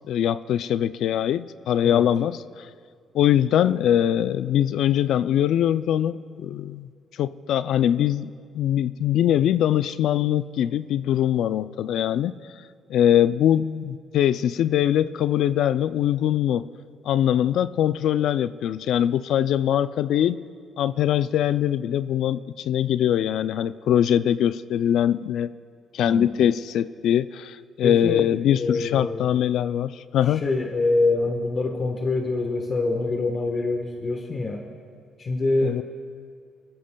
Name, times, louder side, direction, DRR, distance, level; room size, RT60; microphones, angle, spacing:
voice 1, 0.1-2.7 3.1-6.9 7.2-12.3 12.9-16.7 17.0-20.4 20.8-25.5 25.9-30.4 35.6-35.8, left 10 dB, 75° left, 14 dB, 0.3 m, -22 dB
voice 2, 26.0-26.3 27.8-29.3 30.3-34.7 35.2-35.8, left 3 dB, 40° left, 3 dB, 1.2 m, -25 dB
21.5 x 14.5 x 2.3 m, 2.2 s
cardioid pair, 90°, 0 cm